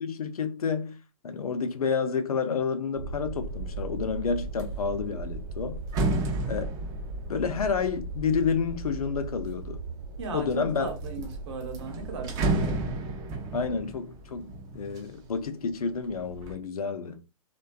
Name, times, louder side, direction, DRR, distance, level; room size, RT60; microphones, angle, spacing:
voice 1, 0.0-1.0 1.2-5.8 6.5-6.7 7.3-9.8 10.3-10.9 13.5-14.4 14.7-17.2, left 5 dB, 85° left, 0.5 m, -29 dB
sound 1, 2.9-13.0, right 3 dB, 90° right, 0.8 m, -38 dB
sound 2, 3.5-3.9 4.3-9.6 10.2-10.9 11.2-11.3 11.6-15.5 15.9-16.5, right 2 dB, 20° right, 0.4 m, -33 dB
voice 2, 6.0-6.3 10.2-12.8, right 3 dB, 50° right, 0.9 m, -37 dB
2.5 x 2.2 x 2.2 m
hypercardioid pair, 130°, 18 cm